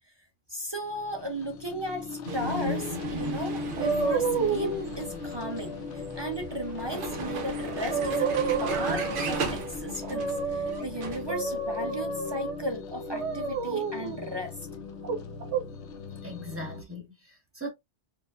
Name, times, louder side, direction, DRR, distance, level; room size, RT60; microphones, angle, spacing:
voice 1, 0.5-8.3 8.6-14.6, right 1 dB, 35° right, 0.4 m, -36 dB
sound 1, 0.9-16.8, left 5 dB, 90° left, 1.0 m, -39 dB
Vehicle, 2.3-11.3, right 3 dB, 55° right, 0.8 m, -36 dB
sound 2, 3.8-4.9 7.3-7.4 7.8-9.5 10.0-10.8 11.3-12.6 13.1-14.2 15.0-15.6, right 4 dB, 80° right, 1.1 m, -29 dB
voice 2, 16.2-17.7, equal, 10° right, 1.1 m, -39 dB
4.6 x 2.5 x 2.3 m
omnidirectional pair, 1.2 m